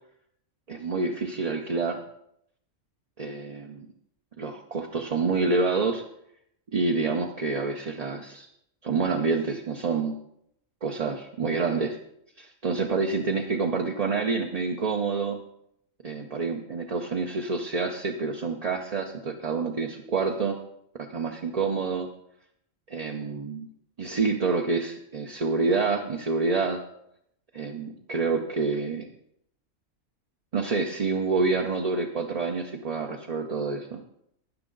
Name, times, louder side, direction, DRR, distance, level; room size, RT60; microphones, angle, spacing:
voice 1, 0.7-2.0 3.2-3.9 4.4-6.0 6.7-8.5 8.8-10.1 10.8-12.0 12.4-15.4 16.0-20.6 21.0-22.1 22.9-23.7 24.0-26.8 27.5-29.1 30.5-34.0, right 4 dB, 40° right, 2 dB, 0.6 m, -27 dB
13.0 x 9.4 x 3.9 m, 0.74 s
omnidirectional pair, 1.4 m